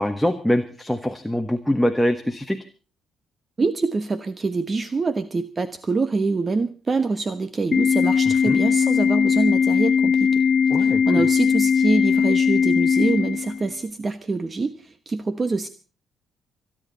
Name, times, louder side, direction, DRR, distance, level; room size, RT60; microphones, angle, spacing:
voice 1, 0.0-2.6 8.5-8.6 10.7-11.2, equal, ahead, 6 dB, 1.3 m, -23 dB
voice 2, 3.6-10.4 10.8-15.7, right 3 dB, 30° right, 12 dB, 1.1 m, -25 dB
Organ, 7.7-13.7, left 6 dB, 45° left, 0.8 m, -19 dB
28.5 x 10.5 x 4.0 m, 0.36 s
cardioid pair, 90°, 0 cm